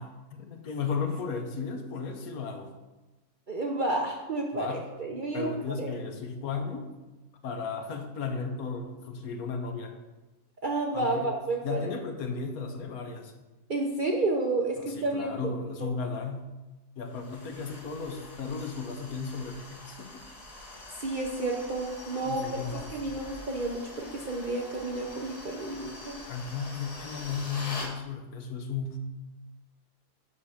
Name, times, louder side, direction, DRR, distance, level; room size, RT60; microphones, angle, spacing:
voice 1, 0.0-2.7 4.5-4.8 5.1-6.9 7.4-9.9 10.9-11.3 11.6-13.3 14.8-16.5 17.0-20.2 22.2-22.9 26.3-29.0, left 5 dB, 70° left, 6 dB, 1.3 m, -35 dB
voice 2, 3.5-5.9 10.6-11.9 13.7-15.5 15.8-15.9 21.0-22.4 22.9-26.2, right 2 dB, 45° right, 0 dB, 0.6 m, -31 dB
sound 1, 17.1-27.9, left 2 dB, 30° left, 0.9 m, -44 dB
5.9 x 5.6 x 6.4 m, 1.1 s
omnidirectional pair, 1.6 m